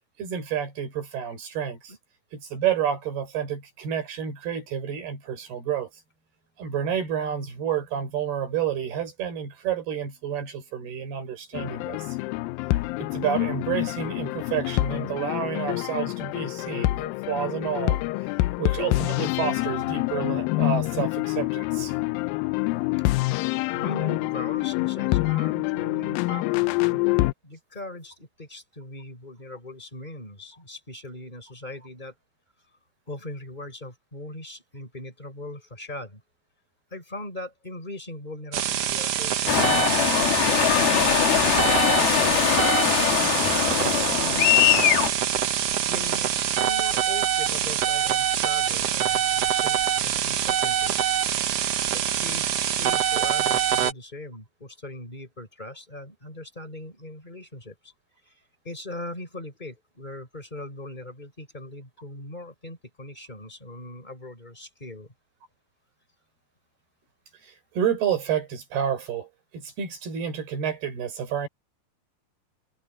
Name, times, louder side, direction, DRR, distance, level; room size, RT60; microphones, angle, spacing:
voice 1, 0.2-1.9 2.3-5.9 6.6-12.2 13.0-18.0 18.6-22.0 22.7-22.8 25.3-25.4 67.4-71.5, right 8 dB, 70° right, 7.3 m, -29 dB
sound 1, 11.5-27.3, left 20 dB, 90° left, 2.0 m, -26 dB
voice 2, 23.7-27.1 27.4-32.1 33.1-36.2 36.9-41.0 41.4-42.8 43.7-44.9 45.9-46.3 46.6-51.1 51.9-57.9 58.3-58.4 58.6-65.1, left 1 dB, 10° left, 6.8 m, -40 dB
sound 2, 38.5-53.9, right 10 dB, 85° right, 1.3 m, -25 dB
sound 3, 39.5-45.1, left 10 dB, 70° left, 3.8 m, -21 dB
omnidirectional pair, 4.7 m